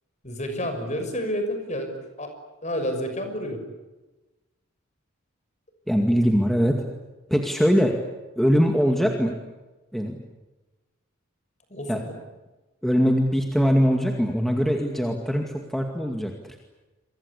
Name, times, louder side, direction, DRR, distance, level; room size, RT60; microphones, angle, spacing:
voice 1, 0.2-2.3 2.6-3.6 8.8-8.9 11.7-12.1, equal, 35° left, 6 dB, 6.1 m, -30 dB
voice 2, 5.9-6.8 7.3-8.0 8.4-9.3 9.9-10.2 11.9-12.0 12.8-16.3, equal, ahead, 3 dB, 2.2 m, -22 dB
28.5 x 24.0 x 8.5 m, 1.1 s
head